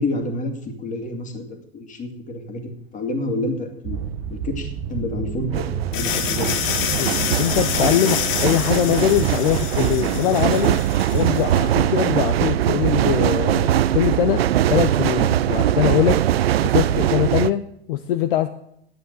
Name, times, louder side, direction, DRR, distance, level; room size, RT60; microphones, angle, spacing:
voice 1, 0.0-4.0 4.3-6.6, left 2 dB, 25° left, 5 dB, 2.2 m, -28 dB
sound 1, 3.8-10.6, right 7 dB, 35° right, 0.8 m, -32 dB
sound 2, 4.1-4.3 5.3-17.5, right 12 dB, 70° right, 0.5 m, -21 dB
sound 3, 5.9-11.6, left 8 dB, 40° left, 1.4 m, -27 dB
voice 2, 6.9-10.8 11.1-16.2 16.6-18.5, left 12 dB, 55° left, 9 dB, 0.7 m, -22 dB
9.7 x 8.3 x 8.0 m, 0.74 s
figure-of-eight pair, 90°, 32 cm